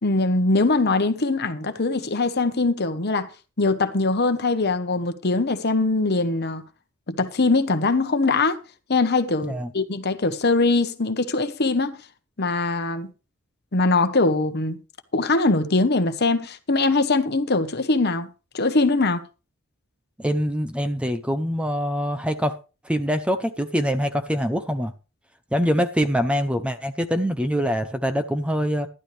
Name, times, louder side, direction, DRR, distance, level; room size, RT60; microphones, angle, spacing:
voice 1, 0.0-3.3 3.6-6.6 7.1-8.6 8.9-12.0 12.4-13.1 13.7-14.8 15.1-18.3 18.5-19.2, left 3 dB, 50° left, 1.1 m, -22 dB
voice 2, 20.2-22.5 22.8-24.9 25.5-28.9, equal, 5° right, 0.7 m, -24 dB
12.0 x 12.0 x 3.4 m
head